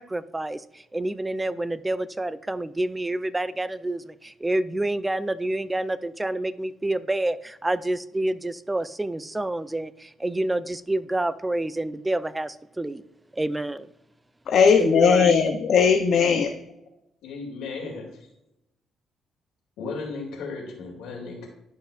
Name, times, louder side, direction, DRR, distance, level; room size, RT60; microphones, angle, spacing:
voice 1, 0.0-13.0 13.3-13.9 14.8-15.4, right 1 dB, 15° right, 15 dB, 0.4 m, -28 dB
voice 2, 14.5-16.5, left 6 dB, 65° left, 5 dB, 0.6 m, -18 dB
voice 3, 17.2-18.2 19.8-21.5, left 4 dB, 85° left, -1 dB, 2.4 m, -35 dB
11.5 x 5.6 x 2.4 m, 0.85 s
cardioid pair, 90°, 0 cm